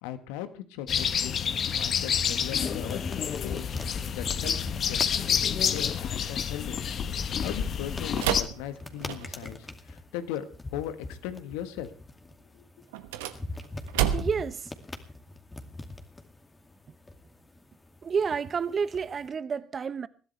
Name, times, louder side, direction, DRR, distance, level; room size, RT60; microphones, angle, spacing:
voice 1, 0.0-1.3 1.8-3.0 3.4-3.8 4.1-4.5 4.8-5.0 5.7-6.8 7.3-10.4 10.7-11.9 12.5-12.6, left 11 dB, 75° left, 1.5 m, -38 dB
sound 1, 0.9-8.4, left 7 dB, 50° left, 1.3 m, -29 dB
sound 2, 1.1-19.3, left 2 dB, 20° left, 2.4 m, -43 dB
sound 3, 8.2-9.6 12.9-14.5, right 10 dB, 80° right, 1.1 m, -30 dB
voice 2, 14.1-14.7 16.9-17.0 18.0-20.1, right 6 dB, 40° right, 1.0 m, -30 dB
21.5 x 15.0 x 3.4 m
hypercardioid pair, 55°, 0 cm